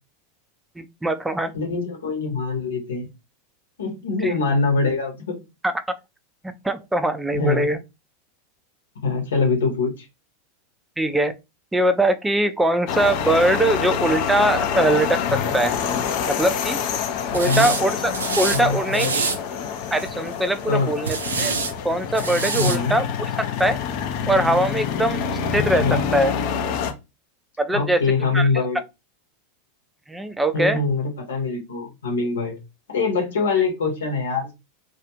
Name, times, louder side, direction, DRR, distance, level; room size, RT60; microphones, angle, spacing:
voice 1, 0.8-1.5 4.2-4.3 5.6-5.7 6.6-7.8 11.0-11.3 11.7-15.8 16.3-16.8 17.3-19.3 19.9-21.5 21.8-23.0 23.4-23.8 24.3-25.2 25.5-26.3 27.6-28.0 28.3-28.5 30.1-30.8, right 1 dB, 10° right, 0.4 m, -22 dB
voice 2, 1.5-3.1 3.8-5.4 7.3-7.7 9.0-10.1 17.4-17.7 18.5-19.1 20.7-21.0 22.5-23.0 25.5-26.0 27.7-28.8 30.5-32.6 32.9-34.5, left 4 dB, 70° left, 0.9 m, -23 dB
sound 1, 12.9-26.9, left 7 dB, 50° left, 0.5 m, -27 dB
sound 2, 17.3-17.8 18.1-18.6 18.9-19.4 19.9-20.3 21.0-21.7 22.1-22.8, right 4 dB, 75° right, 0.4 m, -26 dB
2.4 x 2.3 x 2.9 m
figure-of-eight pair, 85°, 0 cm